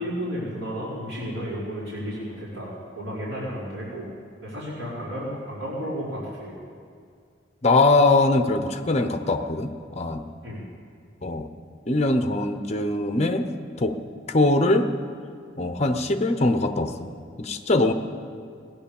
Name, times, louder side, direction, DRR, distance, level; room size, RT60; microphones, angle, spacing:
voice 1, 0.0-4.1 4.4-6.5 10.4-10.6, equal, 80° right, -12 dB, 5.0 m, -32 dB
voice 2, 7.6-10.2 11.2-11.5 11.9-13.5 13.8-13.9 14.3-14.9 15.6-17.1 17.4-17.9, left 2 dB, 35° left, 8 dB, 0.8 m, -22 dB
18.0 x 10.5 x 7.1 m, 2.2 s
head